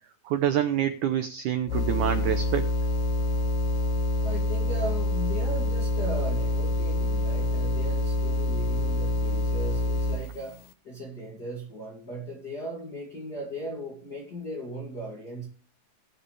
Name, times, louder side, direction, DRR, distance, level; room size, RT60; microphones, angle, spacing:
voice 1, 0.2-2.7, right 10 dB, 90° right, 9 dB, 1.7 m, -26 dB
sound 1, 1.7-10.4, left 1 dB, 75° left, 1.8 m, -26 dB
voice 2, 4.2-10.6 10.8-15.5, right 1 dB, 30° left, -3 dB, 2.4 m, -37 dB
19.0 x 6.9 x 3.3 m, 0.40 s
omnidirectional pair, 4.5 m